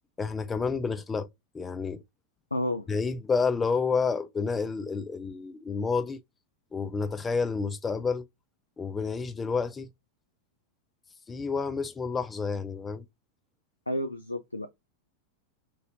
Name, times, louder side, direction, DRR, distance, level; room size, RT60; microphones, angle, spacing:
voice 1, 0.2-1.3 1.5-2.0 2.9-6.2 6.7-8.2 8.8-9.9 11.3-13.1, left 5 dB, 15° left, 0.4 m, -29 dB
voice 2, 2.5-2.9 13.9-14.7, left 1 dB, 85° left, 0.3 m, -31 dB
3.0 x 2.7 x 2.6 m
figure-of-eight pair, 90°, 0 cm